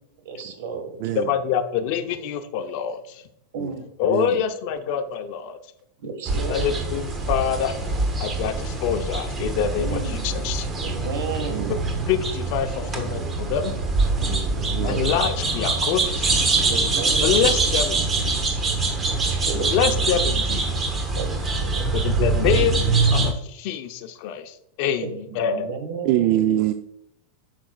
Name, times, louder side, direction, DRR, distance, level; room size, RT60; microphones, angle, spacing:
voice 1, 0.2-1.1 3.5-3.9 6.0-6.8 9.8-10.3 10.8-11.7 14.4-14.7 15.1-15.2 16.7-17.3 19.2-19.8 21.1-21.9 25.0-26.4, right 4 dB, 70° right, 1.5 m, -33 dB
voice 2, 1.2-3.2 4.0-5.6 6.5-7.8 8.2-10.7 11.7-11.8 12.1-13.7 14.8-16.3 17.2-18.6 19.6-21.0 21.9-22.9 23.1-25.7, left 8 dB, 55° left, 0.6 m, -26 dB
voice 3, 4.0-4.4 11.5-11.8 14.3-15.1 19.6-19.7 26.0-26.7, right 13 dB, 50° right, 0.4 m, -24 dB
sound 1, 6.3-23.3, right 3 dB, 20° right, 1.0 m, -24 dB
8.6 x 5.9 x 2.4 m
supercardioid pair, 140°, 0 cm